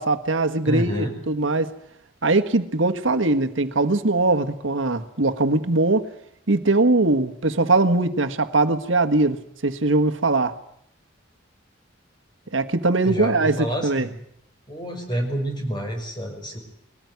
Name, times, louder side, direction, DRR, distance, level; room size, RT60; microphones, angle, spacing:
voice 1, 0.0-1.7 2.2-6.1 6.5-10.5 12.5-14.1, right 2 dB, 85° right, 1.5 m, -21 dB
voice 2, 0.6-1.1 13.0-14.1 14.7-16.6, equal, 25° left, 5.6 m, -28 dB
22.5 x 18.5 x 9.5 m
head